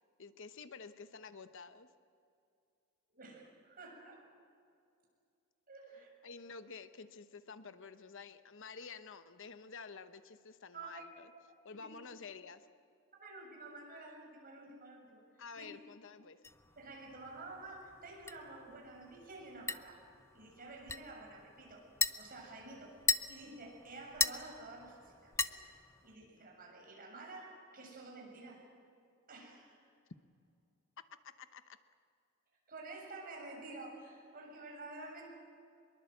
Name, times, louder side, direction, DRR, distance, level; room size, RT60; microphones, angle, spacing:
voice 1, 0.2-1.9 6.2-11.3 11.6-12.7 15.4-16.4 31.0-31.8, left 5 dB, 65° left, 11 dB, 1.0 m, -50 dB
voice 2, 3.1-4.2 5.7-6.1 10.7-11.1 11.7-11.9 13.2-15.7 16.8-20.0 20.3-21.9 22.1-22.9 23.3-25.7 26.0-28.6 29.3-29.8 32.7-35.3, right 2 dB, 45° right, 0 dB, 7.0 m, -50 dB
sound 1, 16.4-26.2, left 4 dB, 10° left, 0.6 m, -40 dB
24.5 x 22.0 x 7.9 m, 2.5 s
head